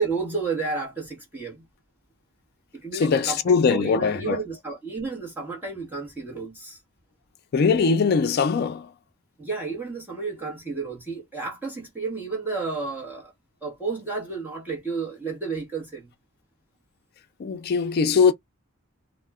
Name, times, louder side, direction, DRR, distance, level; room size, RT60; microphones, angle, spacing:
voice 1, 0.0-1.6 2.7-6.8 9.4-13.3 13.6-16.1, right 4 dB, 10° right, 0.9 m, -31 dB
voice 2, 2.9-4.4 7.5-8.9 17.4-18.3, left 5 dB, 50° left, 0.4 m, -21 dB
2.1 x 2.0 x 3.4 m
head